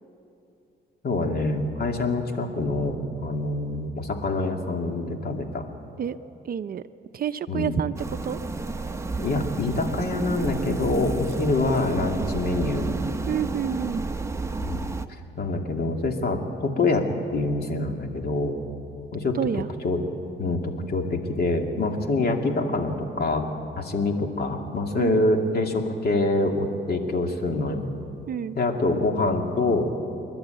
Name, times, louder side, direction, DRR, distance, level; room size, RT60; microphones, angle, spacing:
voice 1, 1.0-5.6 7.5-7.8 9.2-12.9 14.6-14.9 15.4-17.1 17.3-18.5 19.1-20.0 20.4-23.5 23.8-27.8 28.5-29.9, left 2 dB, 50° left, 3 dB, 2.4 m, -25 dB
voice 2, 6.4-6.8 7.1-7.9 8.2-8.4 13.3-14.0 19.3-19.7 25.0-25.2 28.3-28.6, right 9 dB, 50° right, 12 dB, 0.6 m, -28 dB
sound 1, 8.0-15.1, right 3 dB, 15° right, 0.9 m, -31 dB
28.0 x 12.0 x 9.1 m, 2.7 s
cardioid pair, 90°, 20 cm